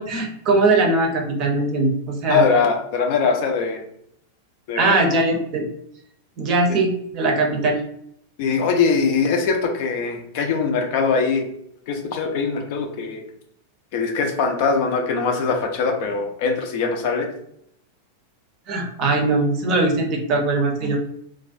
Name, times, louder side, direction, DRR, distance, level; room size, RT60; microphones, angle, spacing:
voice 1, 0.0-2.4 4.8-5.7 6.4-7.8 18.7-21.0, right 2 dB, 35° right, 2 dB, 0.6 m, -20 dB
voice 2, 2.3-3.8 4.7-5.0 6.7-6.8 8.4-11.5 11.9-13.2 13.9-17.3, left 5 dB, 50° left, 3 dB, 0.4 m, -22 dB
2.3 x 2.1 x 2.5 m, 0.71 s
figure-of-eight pair, 90°, 0 cm